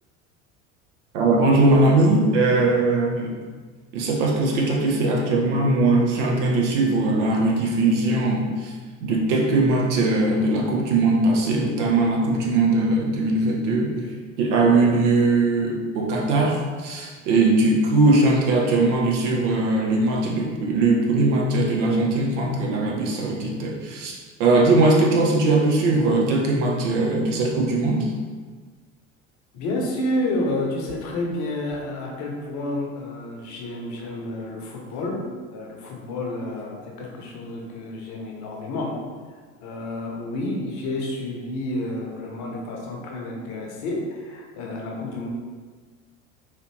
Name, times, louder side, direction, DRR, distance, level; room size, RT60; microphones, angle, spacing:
voice 1, 1.1-3.3 3.9-8.7 9.0-13.9 14.4-28.1, right 2 dB, 65° right, -1 dB, 0.8 m, -20 dB
voice 2, 29.5-35.2 35.5-39.0 39.6-45.3, left 1 dB, 45° left, -1 dB, 0.8 m, -30 dB
3.3 x 2.9 x 2.9 m, 1.5 s
figure-of-eight pair, 70°, 39 cm